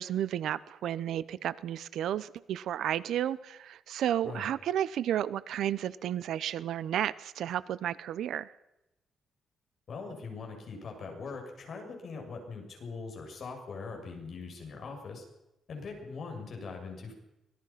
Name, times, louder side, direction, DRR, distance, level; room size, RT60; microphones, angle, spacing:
voice 1, 0.0-8.5, right 10 dB, 75° right, 17 dB, 0.9 m, -32 dB
voice 2, 9.9-15.2 15.7-17.1, left 4 dB, 45° left, 2 dB, 7.3 m, -41 dB
25.0 x 20.0 x 5.9 m, 0.91 s
cardioid pair, 160°, 0 cm